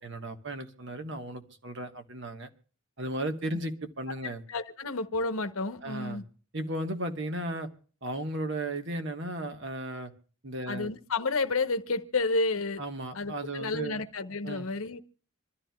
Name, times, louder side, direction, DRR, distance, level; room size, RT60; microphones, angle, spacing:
voice 1, 0.0-2.5 3.0-4.4 5.8-6.2 6.5-7.7 8.0-10.1 10.4-10.9 12.8-14.0 14.4-14.7, right 1 dB, 60° right, 1.3 m, -35 dB
voice 2, 4.2-6.2 10.7-12.8 13.1-15.0, left 3 dB, 85° left, 0.9 m, -31 dB
26.0 x 13.0 x 2.3 m
head